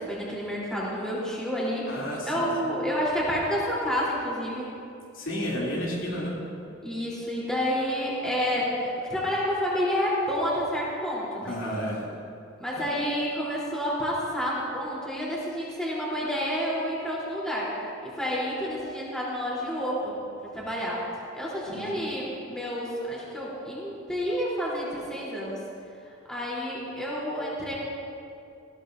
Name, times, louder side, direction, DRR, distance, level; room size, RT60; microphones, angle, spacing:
voice 1, 0.0-1.9 2.2-4.7 6.8-11.6 12.6-20.1 20.4-21.1 21.3-25.6 26.3-27.7, equal, 5° left, -7 dB, 3.6 m, -29 dB
voice 2, 1.9-2.7 5.1-6.4 11.4-12.1 21.7-22.0, equal, 75° left, -5 dB, 3.1 m, -32 dB
19.0 x 16.0 x 2.7 m, 2.6 s
head